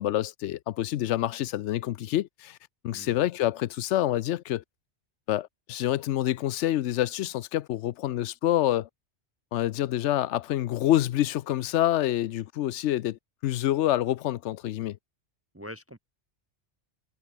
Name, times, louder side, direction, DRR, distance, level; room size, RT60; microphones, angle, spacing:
voice 1, 0.0-2.6 2.8-4.6 5.3-8.9 9.5-15.0, left 13 dB, 90° left, 0.9 m, -27 dB
voice 2, 2.9-3.3 15.5-16.0, equal, 15° right, 0.6 m, -43 dB
omnidirectional pair, 1.2 m